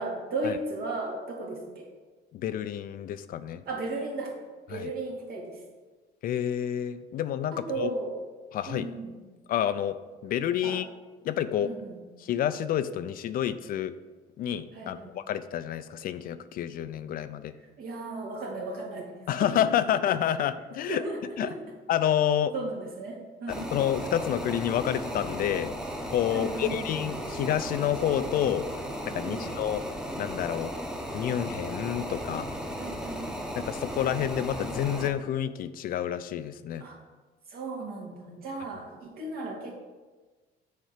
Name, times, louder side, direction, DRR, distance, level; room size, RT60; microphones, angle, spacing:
voice 1, 0.0-1.9 3.7-4.3 4.7-5.6 7.5-8.1 8.7-9.1 10.6-10.8 11.6-12.0 14.7-15.1 17.8-19.1 19.3-19.6 20.9-21.6 22.5-23.8 26.3-26.9 29.1-29.4 32.8-33.4 36.8-37.0 37.5-39.7, right 2 dB, 65° right, -1 dB, 2.2 m, -35 dB
voice 2, 2.3-3.6 4.7-4.9 6.2-7.9 8.5-8.9 9.5-9.9 10.2-10.9 11.2-11.7 12.2-13.9 14.4-17.5 19.3-21.0 21.4-21.5 21.9-22.5 23.5-25.7 26.1-28.7 29.0-29.8 30.2-30.7 31.1-32.5 33.6-36.8, left 10 dB, 60° left, 12 dB, 0.4 m, -29 dB
sound 1, 23.5-35.1, equal, 5° right, 0.9 m, -36 dB
6.4 x 4.4 x 6.6 m, 1.3 s
cardioid pair, 110°, 17 cm